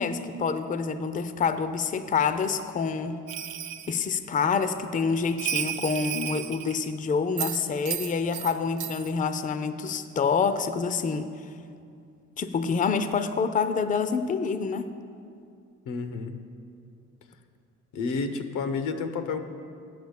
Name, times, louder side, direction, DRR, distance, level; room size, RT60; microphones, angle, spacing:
voice 1, 0.0-3.2 3.9-11.3 12.4-14.9, left 5 dB, 25° left, 11 dB, 0.5 m, -27 dB
Bell, 3.3-4.0 5.4-6.9 7.4-8.5 8.8-9.1, right 10 dB, 85° right, 0.7 m, -33 dB
voice 2, 15.9-16.4 17.9-19.4, left 4 dB, 85° left, 8 dB, 0.8 m, -30 dB
8.4 x 6.3 x 8.0 m, 2.4 s
cardioid pair, 90°, 30 cm